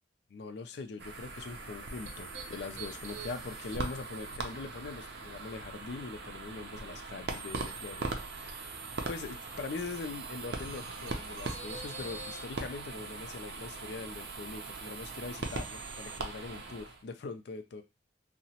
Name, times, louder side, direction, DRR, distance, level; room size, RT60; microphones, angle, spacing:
voice 1, 0.3-8.7 9.1-17.8, left 4 dB, 60° left, 0.4 m, -42 dB
sound 1, 1.0-17.0, right 3 dB, 65° right, 0.5 m, -40 dB
2.8 x 2.1 x 2.8 m
head